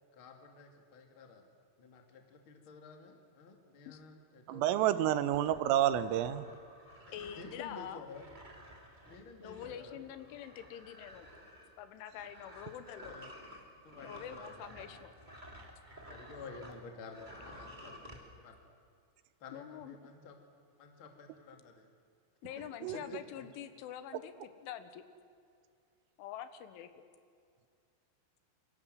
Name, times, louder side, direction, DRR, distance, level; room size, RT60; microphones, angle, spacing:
voice 1, 0.1-1.4 1.8-5.2 7.2-8.3 9.0-10.0 13.1-13.3 13.8-14.9 16.1-18.8 19.4-20.4 20.8-21.9 22.5-22.6 22.9-23.5, left 4 dB, 35° left, 3 dB, 2.4 m, -51 dB
voice 2, 4.5-6.5 22.8-23.0, right 11 dB, 85° right, 12 dB, 3.7 m, -29 dB
sound 1, 5.3-16.8 17.1-18.2, equal, 15° right, 2.1 m, -53 dB
voice 3, 7.1-8.0 9.4-11.3 11.8-13.1 14.0-15.1 19.5-20.0 22.4-25.0 26.2-27.0, left 10 dB, 75° left, 10 dB, 3.6 m, -46 dB
28.0 x 24.5 x 7.8 m, 2.3 s
omnidirectional pair, 5.9 m